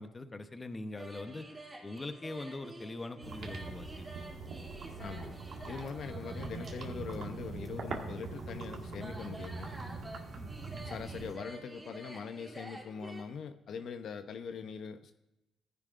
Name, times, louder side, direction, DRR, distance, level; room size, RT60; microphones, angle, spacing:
voice 1, 0.0-1.5 1.8-4.1 4.5-4.8 6.1-6.2 10.3-10.5, left 2 dB, 25° left, 8 dB, 0.9 m, -43 dB
sound 1, 1.0-13.2, right 1 dB, 20° right, 2.7 m, -49 dB
sound 2, 3.2-11.3, right 4 dB, 65° right, 1.6 m, -42 dB
voice 2, 5.0-5.4 5.6-9.7 10.8-15.1, left 6 dB, 65° left, 8 dB, 0.7 m, -42 dB
15.5 x 10.5 x 2.5 m, 0.96 s
cardioid pair, 90°, 0 cm